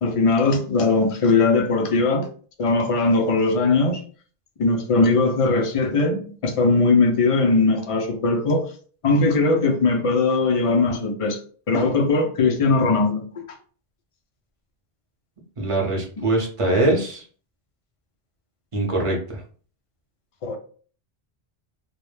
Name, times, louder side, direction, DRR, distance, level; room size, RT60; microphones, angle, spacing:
voice 1, 0.0-2.3 2.6-4.0 4.6-8.7 9.0-11.4 11.7-13.5 20.4-20.6, left 3 dB, 60° left, 0.3 m, -20 dB
voice 2, 15.6-17.2 18.7-19.4, right 2 dB, 35° right, 0.7 m, -22 dB
2.2 x 2.0 x 3.0 m
omnidirectional pair, 1.1 m